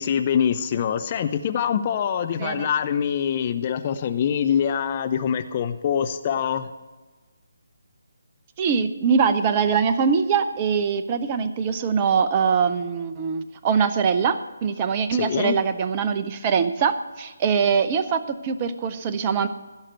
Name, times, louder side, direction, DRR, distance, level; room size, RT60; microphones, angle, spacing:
voice 1, 0.0-6.7 15.1-15.6, left 8 dB, 30° left, 9 dB, 0.6 m, -24 dB
voice 2, 2.4-2.7 8.6-19.5, right 6 dB, 25° right, 10 dB, 0.7 m, -23 dB
16.0 x 5.9 x 7.8 m, 1.3 s
figure-of-eight pair, 145°, 0 cm